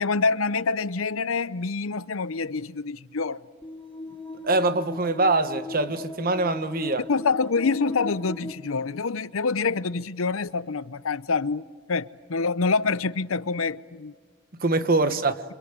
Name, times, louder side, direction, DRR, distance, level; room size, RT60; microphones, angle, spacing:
voice 1, 0.0-3.4 7.1-14.1, left 4 dB, 85° left, 0.7 m, -26 dB
sound 1, 3.6-8.5, left 1 dB, 10° left, 3.9 m, -37 dB
voice 2, 4.4-7.1 14.5-15.4, right 2 dB, 45° right, 1.2 m, -24 dB
27.5 x 25.5 x 8.2 m
head